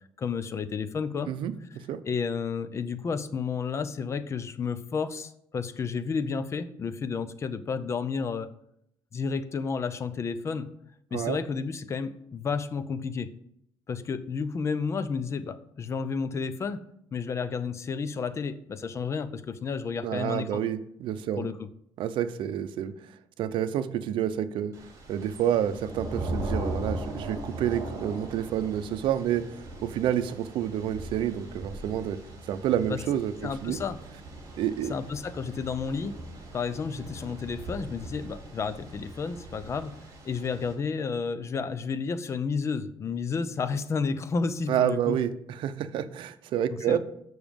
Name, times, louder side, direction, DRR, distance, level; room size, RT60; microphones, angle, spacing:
voice 1, 0.2-1.3 2.1-8.5 9.1-10.7 11.1-13.3 13.9-16.8 17.1-20.6 21.4-21.5 32.9-33.0 33.4-34.0 34.9-36.1 36.5-40.0 40.2-45.2 46.9-47.0, left 5 dB, 35° left, 13 dB, 0.6 m, -31 dB
voice 2, 20.0-21.5 22.0-24.7 25.1-29.4 29.8-32.2 32.5-33.8 34.6-34.9 44.7-47.0, right 10 dB, 70° right, 12 dB, 0.6 m, -29 dB
Thunder / Rain, 24.7-40.7, right 1 dB, 40° right, 2.8 m, -39 dB
7.1 x 6.2 x 5.2 m, 0.73 s
cardioid pair, 135°, 9 cm